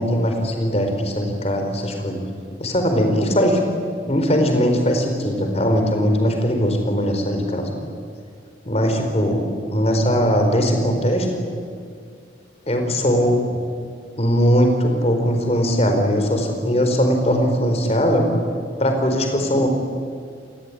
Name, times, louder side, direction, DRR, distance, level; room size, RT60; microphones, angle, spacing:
voice 1, 0.0-2.3 2.6-3.6 4.1-7.7 8.7-11.3 12.7-13.4 14.2-18.3 18.8-19.7, equal, 35° left, 4 dB, 4.5 m, -20 dB
29.0 x 20.0 x 10.0 m, 2.2 s
head